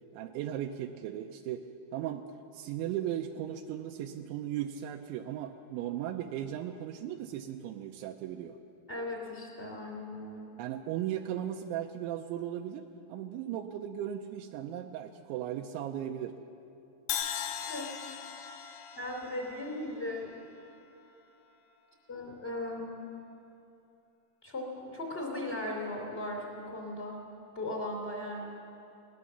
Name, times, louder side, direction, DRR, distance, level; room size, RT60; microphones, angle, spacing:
voice 1, 0.1-1.6 1.9-2.2 2.5-8.6 10.6-12.8 13.1-16.3, right 11 dB, 85° right, 4 dB, 2.7 m, -37 dB
voice 2, 8.9-10.5 17.6-17.9 19.0-20.5 22.1-23.0 24.4-27.2 27.5-28.5, left 1 dB, 15° left, 0 dB, 2.0 m, -37 dB
Crash cymbal, 17.1-21.1, left 9 dB, 75° left, 3.3 m, -39 dB
20.5 x 19.0 x 6.9 m, 2.8 s
omnidirectional pair, 6.0 m